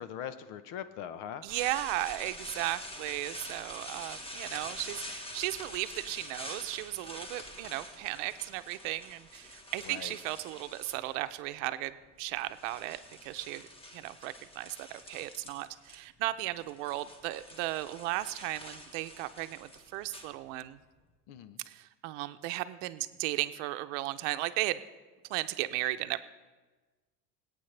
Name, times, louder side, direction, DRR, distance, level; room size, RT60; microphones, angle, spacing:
voice 1, 0.0-1.4 9.9-10.2 21.3-21.6, left 9 dB, 70° left, 12 dB, 0.9 m, -41 dB
voice 2, 1.4-13.7 13.9-20.8 21.7-24.8 25.3-26.2, right 17 dB, 75° right, 11 dB, 0.7 m, -35 dB
sound 1, 1.5-11.4 12.2-16.0 16.2-20.8, left 1 dB, 15° left, 1.3 m, -46 dB
23.0 x 8.9 x 3.3 m, 1.3 s
supercardioid pair, 130°, 37 cm